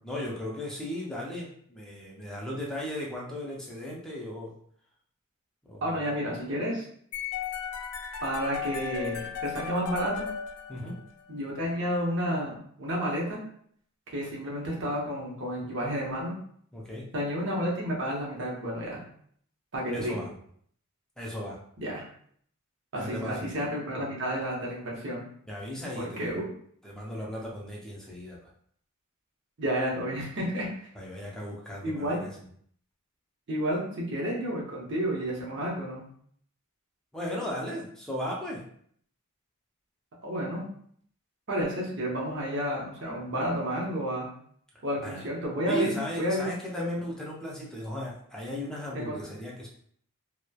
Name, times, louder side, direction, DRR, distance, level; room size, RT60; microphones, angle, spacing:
voice 1, 0.0-4.5 5.6-6.2 10.7-11.0 16.7-17.1 19.9-20.3 21.2-21.6 23.0-23.5 25.5-26.3 26.8-28.4 30.9-32.3 37.1-38.6 45.0-45.3 45.7-49.7, left 1 dB, 5° left, -4 dB, 0.5 m, -36 dB
voice 2, 5.8-6.8 8.2-10.3 11.3-13.4 14.1-16.3 17.1-19.0 19.7-20.1 21.8-22.0 22.9-25.2 26.0-26.5 29.6-30.7 31.8-32.2 33.5-36.0 40.2-40.7 41.5-44.3 44.8-46.5 46.8-46.9 48.9-49.2, equal, 55° right, -3 dB, 0.8 m, -31 dB
sound 1, 7.1-11.2, left 8 dB, 85° left, 0.4 m, -36 dB
3.0 x 2.1 x 2.2 m, 0.63 s
head